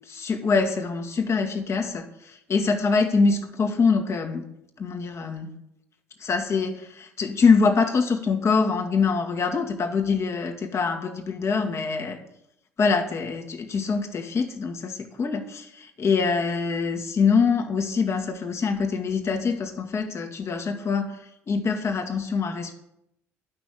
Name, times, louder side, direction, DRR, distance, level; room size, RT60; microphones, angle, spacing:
voice 1, 0.1-4.4 4.8-5.5 6.2-12.2 12.8-21.2 21.5-22.7, left 5 dB, 35° left, 3 dB, 2.1 m, -24 dB
12.0 x 6.1 x 9.3 m, 0.79 s
figure-of-eight pair, 55°, 8 cm